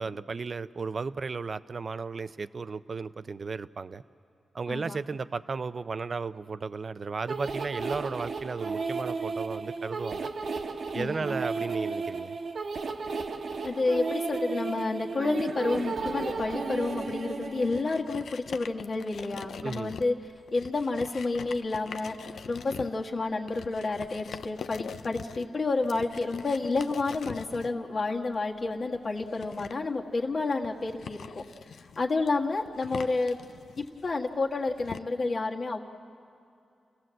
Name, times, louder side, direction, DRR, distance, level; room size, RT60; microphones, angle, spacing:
voice 1, 0.0-4.0 4.5-10.3 10.9-12.4 19.6-19.9, right 4 dB, 50° right, 14 dB, 0.6 m, -34 dB
voice 2, 4.7-5.0 10.9-11.4 13.6-20.2 20.5-31.4 32.0-33.4 33.8-35.8, left 3 dB, 55° left, 0 dB, 1.7 m, -30 dB
sound 1, 7.3-17.8, right 4 dB, 70° right, 1.3 m, -34 dB
sound 2, 16.9-35.0, left 6 dB, 80° left, 0.5 m, -44 dB
29.0 x 17.5 x 7.7 m, 2.5 s
cardioid pair, 75°, 0 cm